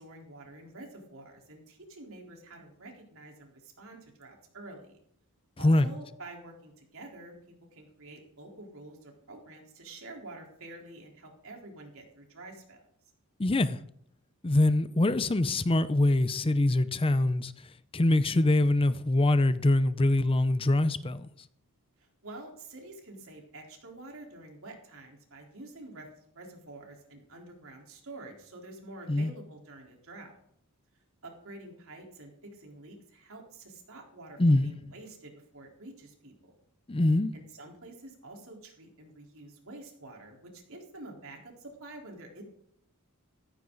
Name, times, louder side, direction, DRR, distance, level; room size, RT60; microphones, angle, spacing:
voice 1, 0.0-5.0 5.6-7.3 7.7-12.8 22.0-30.3 31.2-36.5 37.3-42.4, right 2 dB, 65° right, 4.0 m, -48 dB
voice 2, 13.4-13.8 14.4-21.3 29.1-29.3 34.4-34.7 36.9-37.3, left 1 dB, 25° left, 0.6 m, -24 dB
15.5 x 14.5 x 4.0 m
head